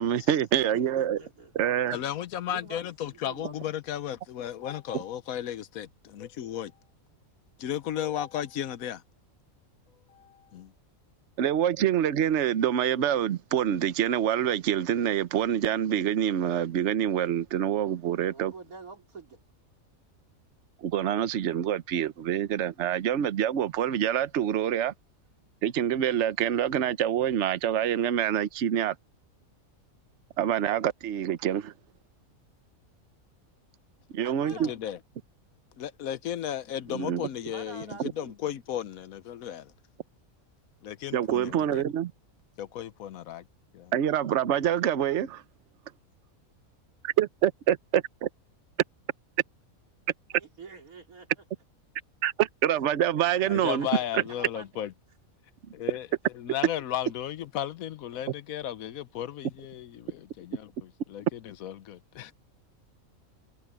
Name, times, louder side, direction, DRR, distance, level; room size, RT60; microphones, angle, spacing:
voice 1, 0.0-1.2 1.5-2.0 11.4-18.5 20.8-24.9 25.6-28.9 30.4-31.7 34.1-34.7 36.9-37.2 41.1-42.1 43.9-45.4 47.0-48.3 52.2-53.9 54.1-54.2, right 10 dB, 60° right, 1.1 m, -26 dB
voice 2, 0.7-1.5 2.5-2.8 3.1-3.7 18.1-19.4 34.2-34.8 37.5-38.3 50.3-51.3 53.8-54.7, right 4 dB, 85° right, 3.4 m, -46 dB
voice 3, 1.9-6.7 7.6-9.0 10.1-10.7 34.5-35.0 35.8-39.7 40.8-41.8 42.6-43.4 43.7-43.9 53.4-54.9 55.7-56.1 56.3-62.3, left 11 dB, 80° left, 1.2 m, -35 dB
omnidirectional pair, 1.5 m